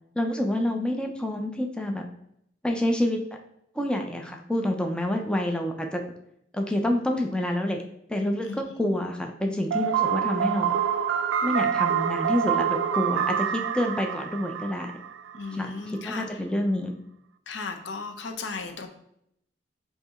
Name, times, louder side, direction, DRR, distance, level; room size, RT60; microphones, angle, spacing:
voice 1, 0.2-2.0 2.6-3.2 3.8-6.0 6.5-7.8 8.1-10.7 11.4-14.9 15.5-16.9, left 1 dB, 5° left, 2 dB, 0.4 m, -27 dB
sound 1, 9.7-15.5, right 8 dB, 85° right, 0.3 m, -26 dB
voice 2, 15.3-16.4 17.5-18.9, left 4 dB, 70° left, 5 dB, 0.6 m, -36 dB
7.8 x 2.7 x 2.4 m, 0.75 s
head